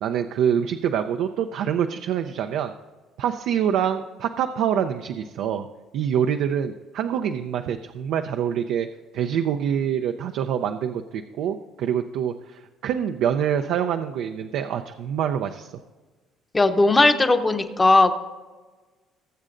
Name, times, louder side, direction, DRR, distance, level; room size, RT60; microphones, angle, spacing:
voice 1, 0.0-2.7 3.2-5.7 5.9-8.9 9.1-15.7, right 9 dB, 75° right, 6 dB, 0.5 m, -25 dB
voice 2, 16.5-18.1, left 2 dB, 20° left, 8 dB, 0.9 m, -17 dB
20.0 x 7.4 x 2.5 m, 1.3 s
supercardioid pair, 90°, 0 cm